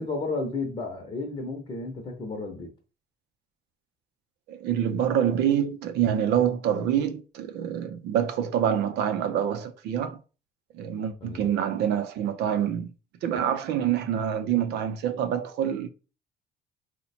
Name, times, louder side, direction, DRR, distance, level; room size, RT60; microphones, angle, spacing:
voice 1, 0.0-2.7 11.2-11.5, left 3 dB, 30° left, 0.8 m, -32 dB
voice 2, 4.5-10.2 10.7-12.9 13.2-15.9, right 9 dB, 80° right, 0.5 m, -26 dB
2.9 x 2.2 x 4.1 m
cardioid pair, 110°, 17 cm